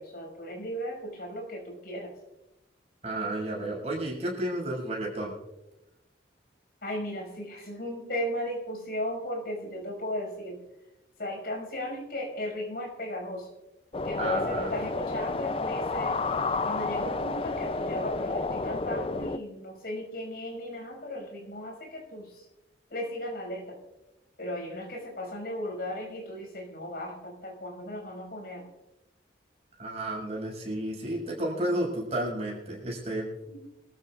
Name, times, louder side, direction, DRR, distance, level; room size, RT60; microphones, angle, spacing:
voice 1, 0.0-2.1 6.8-10.6 11.2-13.5 14.0-16.2 16.6-22.5 22.9-23.8 24.4-28.6 31.6-31.8 33.5-33.6, left 1 dB, 55° left, 0 dB, 6.0 m, -36 dB
voice 2, 3.0-5.3 14.2-14.7 29.8-33.3, right 1 dB, 35° right, -3 dB, 6.2 m, -32 dB
sound 1, 13.9-19.4, left 3 dB, 30° left, 0.5 m, -30 dB
25.5 x 14.5 x 2.5 m, 0.97 s
head